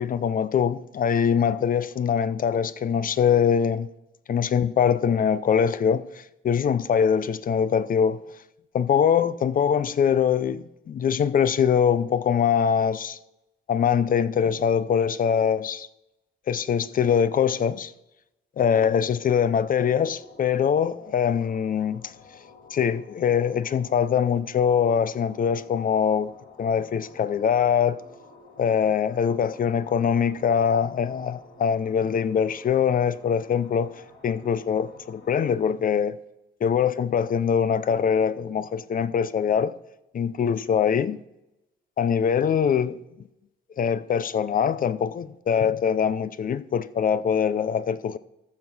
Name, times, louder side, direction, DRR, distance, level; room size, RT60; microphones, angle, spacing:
voice 1, 0.0-3.9 4.3-8.2 8.7-13.2 13.7-15.9 16.5-17.9 18.6-22.1 22.7-26.3 26.6-28.0 28.6-36.2 36.6-39.7 40.1-41.2 42.0-43.0 43.8-48.2, left 7 dB, 45° left, 0.5 m, -23 dB
sound 1, 19.9-35.7, left 4 dB, 60° left, 4.5 m, -51 dB
14.0 x 4.8 x 6.0 m
cardioid pair, 90°, 20 cm